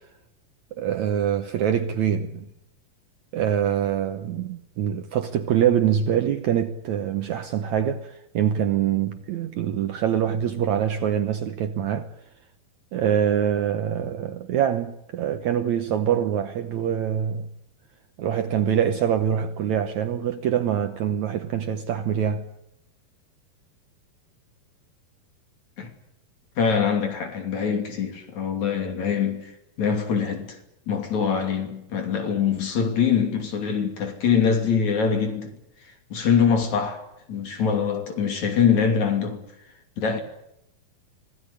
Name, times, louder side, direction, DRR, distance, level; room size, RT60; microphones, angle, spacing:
voice 1, 0.7-2.5 3.3-12.1 12.9-17.5 18.2-22.5, right 9 dB, 65° right, 1.9 m, -24 dB
voice 2, 26.6-29.5 29.8-30.6 30.9-35.5 36.1-37.0 37.3-39.5 40.0-40.2, left 6 dB, 50° left, 4.0 m, -23 dB
25.5 x 17.5 x 10.0 m
omnidirectional pair, 4.3 m